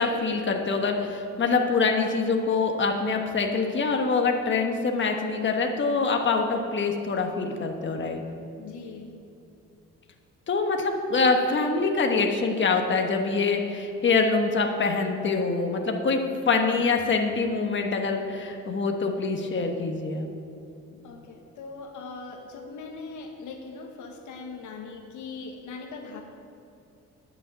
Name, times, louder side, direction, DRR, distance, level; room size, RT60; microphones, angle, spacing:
voice 1, 0.0-8.2 10.5-16.2 16.5-20.3, left 4 dB, 40° left, 3 dB, 1.4 m, -25 dB
voice 2, 8.6-9.1 20.9-26.2, left 4 dB, 80° left, 3 dB, 1.3 m, -40 dB
9.9 x 6.5 x 8.7 m, 2.7 s
cardioid pair, 90°, 30 cm